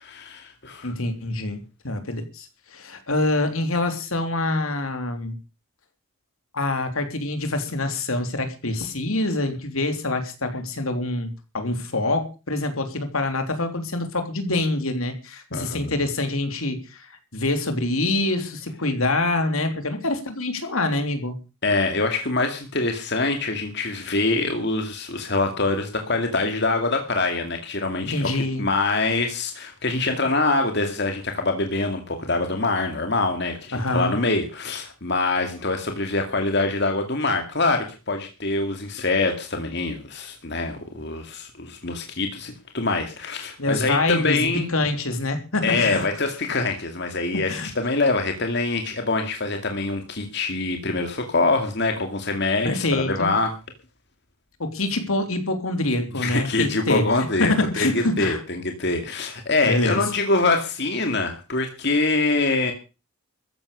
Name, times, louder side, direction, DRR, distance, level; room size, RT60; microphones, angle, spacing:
voice 1, 0.0-0.9 15.5-15.9 21.6-44.7 45.6-53.5 56.2-62.7, left 3 dB, 50° left, 5 dB, 2.3 m, -24 dB
voice 2, 0.8-5.4 6.5-21.4 28.0-28.6 33.7-34.1 43.6-46.1 47.5-47.7 52.6-53.3 54.6-57.0 57.4-58.4 59.6-60.0, left 2 dB, 70° left, 7 dB, 3.2 m, -25 dB
14.5 x 10.5 x 6.7 m, 0.33 s
head